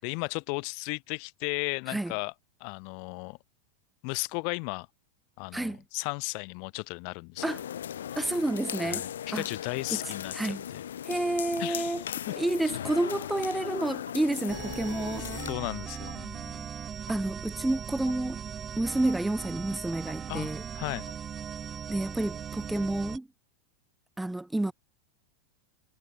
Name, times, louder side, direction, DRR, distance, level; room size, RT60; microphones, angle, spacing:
voice 1, 0.0-2.3 2.6-3.4 4.0-4.9 5.4-7.4 8.1-8.2 8.8-10.8 11.6-12.0 12.3-12.4 15.5-16.7 20.3-21.1, left 40 dB or more, 45° left, 2.7 m, -35 dB
sound 1, 7.4-15.5, left 10 dB, 65° left, 1.3 m, -37 dB
voice 2, 8.2-9.0 9.3-9.5 9.9-10.6 11.0-12.0 12.4-15.3 17.1-18.4 18.8-20.6 21.9-23.3 24.2-24.7, right 1 dB, 5° right, 0.7 m, -30 dB
sound 2, 12.1-12.2 13.1-13.2 14.1-14.2 15.1-15.2 16.1-16.2 17.1-17.2 18.1-18.2 19.1-19.2 20.1-20.2 21.1-21.2, right 1 dB, 85° right, 2.4 m, -45 dB
sound 3, 14.5-23.2, right 8 dB, 20° right, 1.3 m, -39 dB
figure-of-eight pair, 90°, 0 cm